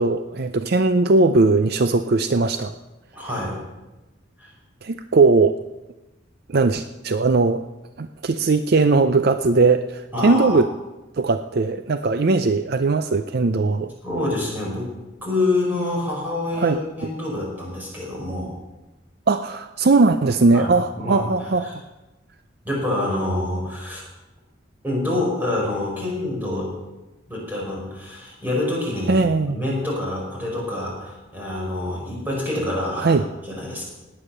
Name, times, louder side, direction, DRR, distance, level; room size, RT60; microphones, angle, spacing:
voice 1, 0.0-2.7 4.8-5.6 6.5-7.7 8.0-10.7 11.2-13.9 16.6-16.8 19.3-21.7 29.1-29.6 33.0-33.2, right 3 dB, 50° right, 10 dB, 0.5 m, -19 dB
voice 2, 3.1-3.6 4.4-4.5 10.1-10.6 14.0-14.9 15.2-18.5 20.5-20.7 21.0-21.3 21.6-21.7 22.6-24.0 24.8-26.7 27.3-33.2 33.4-33.8, left 2 dB, 10° right, -3 dB, 5.5 m, -26 dB
18.0 x 9.3 x 6.7 m, 1.1 s
head